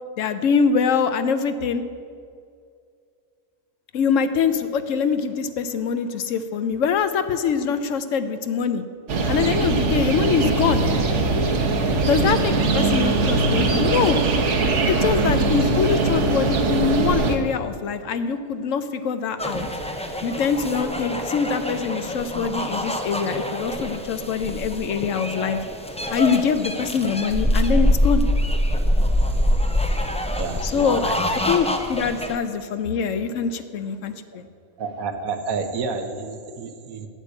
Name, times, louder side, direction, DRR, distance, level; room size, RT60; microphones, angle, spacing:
voice 1, 0.2-1.8 3.9-8.8 9.3-10.8 12.1-14.2 14.9-19.7 20.0-25.6 26.1-28.2 30.6-34.5, left 6 dB, 70° left, 11 dB, 1.0 m, -24 dB
sound 1, 9.1-17.4, right 3 dB, 60° right, 1.3 m, -21 dB
sound 2, 19.4-32.3, equal, 10° left, 0.3 m, -25 dB
voice 2, 30.4-31.2 34.8-37.1, right 4 dB, 90° right, 6 dB, 1.4 m, -30 dB
8.8 x 8.1 x 7.9 m, 2.3 s
omnidirectional pair, 1.4 m